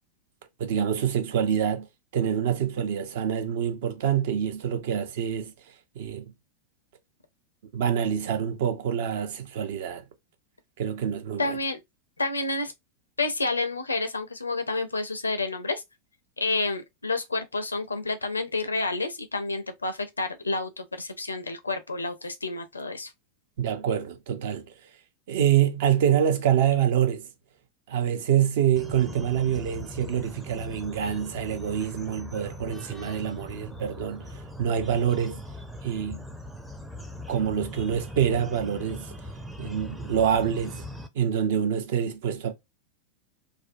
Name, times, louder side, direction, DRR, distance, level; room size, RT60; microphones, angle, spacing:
voice 1, 0.6-1.9 2.1-5.5 6.0-6.3 7.7-10.0 10.8-11.6 23.6-24.6 25.3-27.3 27.9-35.4 35.8-36.2 37.3-39.1 39.6-40.8 41.2-42.5, right 9 dB, 55° right, 0.5 m, -26 dB
voice 2, 11.4-11.8 12.2-12.7 13.2-15.8 16.4-23.1, left 3 dB, 80° left, 0.5 m, -29 dB
sound 1, 28.8-41.1, left 1 dB, 5° right, 0.4 m, -40 dB
2.6 x 2.1 x 2.5 m
figure-of-eight pair, 90°, 0 cm